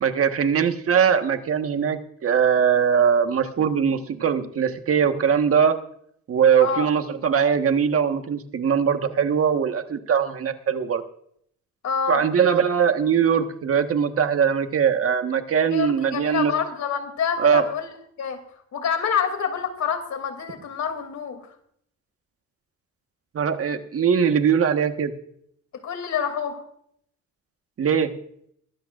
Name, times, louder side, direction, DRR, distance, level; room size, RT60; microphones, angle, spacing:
voice 1, 0.0-5.7 6.3-11.0 12.1-16.5 17.4-17.6 23.3-25.1 27.8-28.1, right 7 dB, 50° right, 7 dB, 1.4 m, -21 dB
voice 2, 11.8-12.2 15.6-17.9 18.2-18.4 18.7-21.4 25.8-26.6, left 7 dB, 65° left, 7 dB, 2.9 m, -27 dB
22.5 x 12.5 x 2.5 m, 0.67 s
cardioid pair, 90°, 30 cm